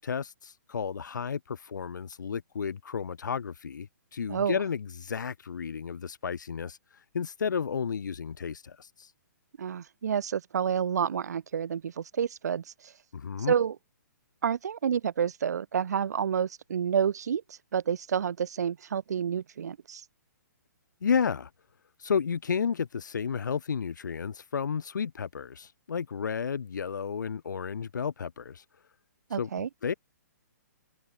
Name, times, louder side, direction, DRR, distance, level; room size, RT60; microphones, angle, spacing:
voice 1, 0.0-9.1 13.1-13.5 21.0-21.5 22.0-28.6 29.4-29.9, left 6 dB, 85° left, 1.8 m, -32 dB
voice 2, 9.6-12.9 13.5-13.8 14.4-20.0 29.3-29.7, right 7 dB, 65° right, 6.0 m, -29 dB
hypercardioid pair, 170°, 10 cm